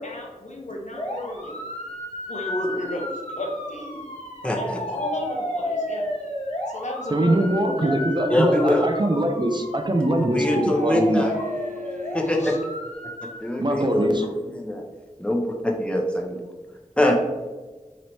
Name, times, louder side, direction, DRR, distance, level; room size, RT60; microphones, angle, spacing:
voice 1, 0.0-1.6 2.3-3.1 3.3-4.0 4.6-6.1 6.7-7.5 7.8-8.4 11.3-11.5 12.4-12.5, left 1 dB, 60° left, 0 dB, 0.8 m, -32 dB
sound 1, 0.9-13.4, left 1 dB, 45° left, 1.0 m, -33 dB
voice 2, 4.4-4.8 8.3-8.9 10.2-11.4 12.1-12.4 13.2-14.8 15.2-16.4 17.0-17.1, left 1 dB, 10° left, 0 dB, 0.7 m, -23 dB
voice 3, 7.1-11.2 13.6-14.2, right 1 dB, 35° right, 5 dB, 0.4 m, -23 dB
sound 2, 10.4-12.7 15.3-15.4, left 3 dB, 85° right, 0.5 m, -36 dB
3.1 x 3.1 x 4.0 m, 1.3 s
wide cardioid pair, 45°, 13 cm